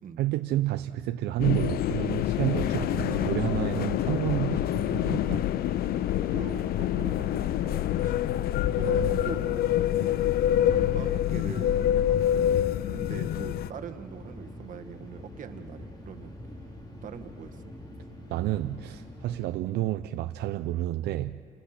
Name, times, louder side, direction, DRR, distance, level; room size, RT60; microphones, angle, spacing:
voice 1, 0.2-5.4 8.8-9.2 18.3-21.4, right 14 dB, 75° right, 9 dB, 0.6 m, -30 dB
sound 1, 1.4-13.7, left 12 dB, 65° left, 0.6 m, -26 dB
sound 2, 2.4-19.5, left 1 dB, 25° left, 3.2 m, -45 dB
voice 2, 2.7-3.3 3.7-3.9 5.9-8.1 8.6-10.2 10.7-12.4 12.9-16.3 17.0-17.6, right 7 dB, 50° right, 7 dB, 1.7 m, -42 dB
29.0 x 20.0 x 5.9 m, 2.3 s
cardioid pair, 110°, 17 cm